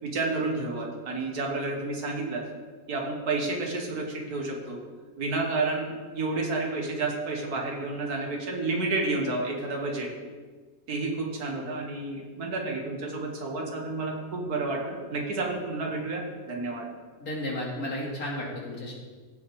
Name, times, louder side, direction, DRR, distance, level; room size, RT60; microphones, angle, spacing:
voice 1, 0.0-2.5 2.9-4.8 5.2-10.1 10.9-16.9, right 3 dB, 75° right, 1 dB, 2.0 m, -30 dB
voice 2, 17.2-18.9, left 1 dB, 70° left, -3 dB, 2.7 m, -33 dB
15.5 x 7.1 x 3.5 m, 1.5 s
omnidirectional pair, 1.6 m